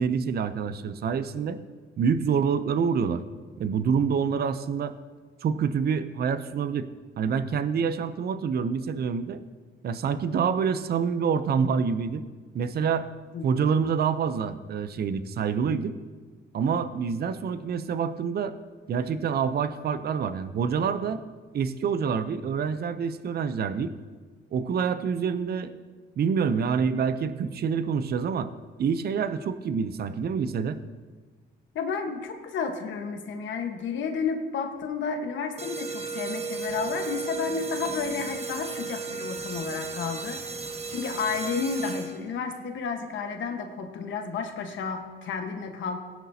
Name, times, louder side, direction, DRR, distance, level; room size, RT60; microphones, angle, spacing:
voice 1, 0.0-1.6 2.0-3.2 3.6-4.9 5.4-6.9 7.2-9.4 9.8-12.3 12.5-13.1 13.4-15.9 16.5-18.6 18.9-21.2 21.5-23.9 24.5-25.7 26.2-28.5 28.8-30.8, right 6 dB, 50° right, 12 dB, 0.6 m, -27 dB
voice 2, 31.7-40.6 40.9-46.0, left 5 dB, 70° left, 5 dB, 1.4 m, -31 dB
sound 1, 35.6-42.4, right 4 dB, 30° right, 1.1 m, -34 dB
17.0 x 10.5 x 2.8 m, 1.4 s
cardioid pair, 90°, 20 cm